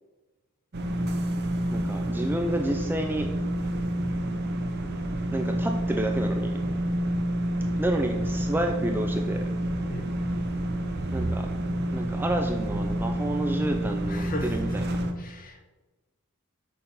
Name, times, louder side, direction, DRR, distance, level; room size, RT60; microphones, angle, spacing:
sound 1, 0.7-15.1, right 1 dB, 50° right, 0.7 m, -28 dB
voice 1, 1.7-3.3 5.3-6.6 7.8-9.5 11.1-11.5 11.9-15.0, right 1 dB, 10° right, 4 dB, 0.4 m, -30 dB
voice 2, 14.0-14.6 15.2-15.6, left 1 dB, 40° left, 5 dB, 0.8 m, -36 dB
6.5 x 4.1 x 5.3 m, 1.2 s
head